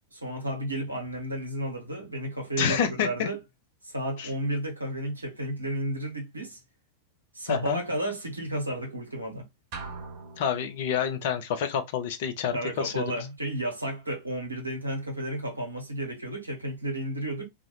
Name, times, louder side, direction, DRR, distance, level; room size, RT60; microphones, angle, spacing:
voice 1, 0.1-3.4 3.8-6.6 7.3-9.5 12.5-17.5, right 1 dB, 85° right, 0.9 m, -32 dB
voice 2, 2.6-3.3 4.2-4.3 7.5-7.8 10.4-13.2, left 8 dB, 50° left, 0.5 m, -28 dB
sound 1, 9.7-11.2, right 4 dB, 45° right, 0.9 m, -41 dB
2.4 x 2.1 x 3.0 m
figure-of-eight pair, 90°, 0 cm